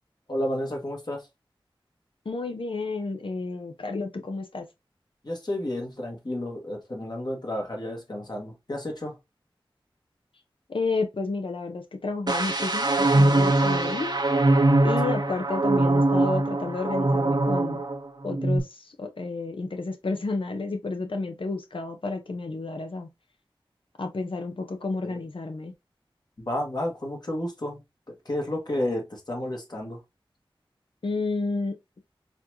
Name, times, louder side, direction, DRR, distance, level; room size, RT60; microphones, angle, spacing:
voice 1, 0.3-1.2 5.2-9.2 25.0-25.2 26.4-27.8 28.1-30.0, left 1 dB, 50° left, 1.5 m, -31 dB
voice 2, 2.2-4.7 10.7-14.2 14.8-17.8 18.2-23.1 24.0-25.7 31.0-31.8, left 3 dB, 70° left, 0.8 m, -31 dB
sound 1, 12.3-18.0 18.3-18.6, right 2 dB, 50° right, 0.8 m, -22 dB
4.2 x 3.0 x 2.7 m
wide cardioid pair, 45°, 9 cm